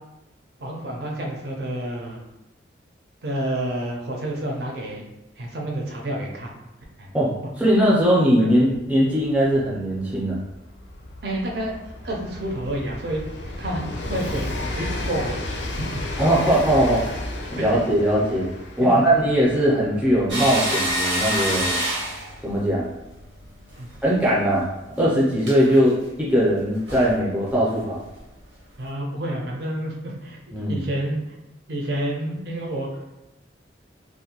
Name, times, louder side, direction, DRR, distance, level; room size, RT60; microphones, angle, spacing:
voice 1, 0.6-2.2 3.2-5.1 5.4-6.5 7.0-7.1 8.4-8.5 11.2-14.5 14.7-15.5 15.8-15.9 17.5-17.6 18.8-18.9 23.8-23.9 25.6-25.8 28.8-30.4 30.7-31.2 31.7-33.0, right 1 dB, 60° right, -1 dB, 0.6 m, -29 dB
voice 2, 7.6-10.4 16.2-17.0 17.5-18.5 18.8-21.8 22.4-22.9 24.0-24.6 25.0-25.9 26.2-28.0 30.5-30.8, equal, 5° right, -6 dB, 0.5 m, -20 dB
Train, 8.1-24.7 25.7-25.8, left 1 dB, 75° left, 0.4 m, -34 dB
sound 1, 20.3-23.8 24.1-24.3 25.4-25.6 26.6-26.7 26.9-27.2 27.5-27.6 28.1-28.2, right 1 dB, 90° right, 0.8 m, -27 dB
2.5 x 2.2 x 2.8 m, 0.94 s
head